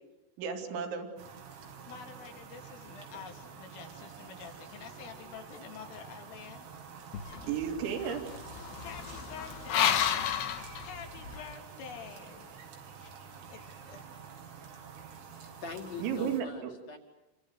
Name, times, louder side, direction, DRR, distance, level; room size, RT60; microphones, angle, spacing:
voice 1, 0.4-1.1 7.5-8.3 16.0-16.7, right 7 dB, 70° right, 5 dB, 4.7 m, -33 dB
sound 1, 1.2-16.4, right 6 dB, 90° right, 5.5 m, -49 dB
voice 2, 1.9-6.6 8.8-10.0 10.8-12.5 13.0-14.2, left 7 dB, 85° left, 3 dB, 5.3 m, -48 dB
sound 2, 7.1-11.5, left 9 dB, 70° left, 3.0 m, -32 dB
voice 3, 15.3-17.0, left 4 dB, 45° left, 3 dB, 2.9 m, -42 dB
28.0 x 24.0 x 7.8 m, 0.98 s
omnidirectional pair, 5.6 m